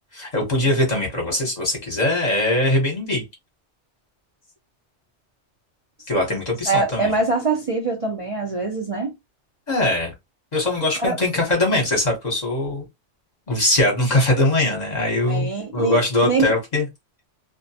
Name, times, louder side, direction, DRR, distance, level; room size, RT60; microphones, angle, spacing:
voice 1, 0.1-3.2 6.1-7.1 9.7-10.1 10.5-12.8 13.5-16.9, left 1 dB, 40° left, 1.0 m, -21 dB
voice 2, 6.7-9.1 11.0-11.2 15.3-16.5, right 3 dB, 40° right, 0.5 m, -23 dB
2.4 x 2.1 x 2.7 m
omnidirectional pair, 1.2 m